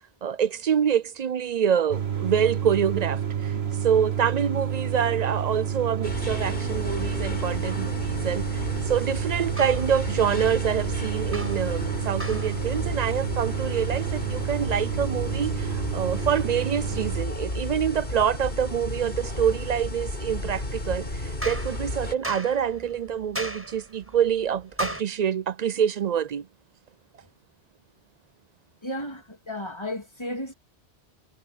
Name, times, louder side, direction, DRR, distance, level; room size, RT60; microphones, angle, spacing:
voice 1, 0.2-3.5 3.8-8.6 8.9-26.5, right 8 dB, 55° right, 0.5 m, -26 dB
sound 1, 1.9-17.2, right 8 dB, 75° right, 1.8 m, -30 dB
sound 2, 6.0-22.1, left 1 dB, 60° left, 4.3 m, -33 dB
sound 3, 9.2-25.0, equal, 10° right, 6.5 m, -41 dB
voice 2, 28.8-30.5, left 1 dB, 25° left, 3.0 m, -33 dB
omnidirectional pair, 1.1 m